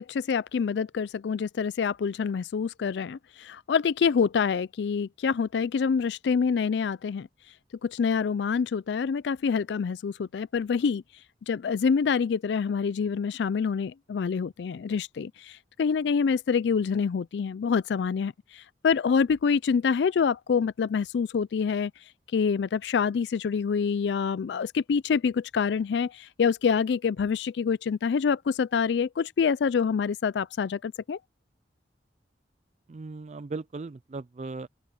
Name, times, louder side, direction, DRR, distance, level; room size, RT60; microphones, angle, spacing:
voice 1, 0.0-7.3 7.8-11.0 11.5-21.9 22.3-31.2, left 6 dB, 70° left, 0.4 m, -26 dB
voice 2, 32.9-34.7, right 3 dB, 35° right, 0.4 m, -37 dB
open air
head